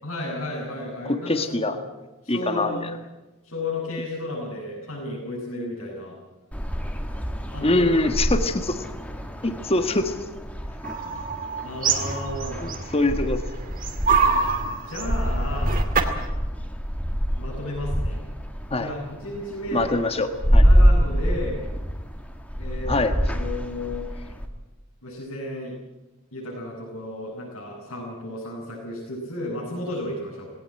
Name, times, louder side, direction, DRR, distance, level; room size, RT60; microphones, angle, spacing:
voice 1, 0.0-1.7 2.2-2.9 3.4-6.2 7.5-7.9 11.0-11.2 11.6-12.6 14.6-15.8 17.4-18.2 18.7-19.9 20.6-21.6 22.6-24.1 25.0-25.7 26.3-30.5, left 1 dB, 90° left, -8 dB, 7.7 m, -33 dB
voice 2, 1.0-1.8 2.3-2.8 7.6-8.8 9.4-10.2 12.6-13.4 18.7-18.9 19.7-20.6 22.9-23.1, left 2 dB, 30° left, 8 dB, 1.5 m, -23 dB
sound 1, 6.5-24.5, equal, 5° left, 1.9 m, -26 dB
sound 2, 10.8-13.3 13.6-16.3, right 5 dB, 40° right, 2.4 m, -25 dB
19.5 x 18.0 x 9.0 m, 1.1 s
head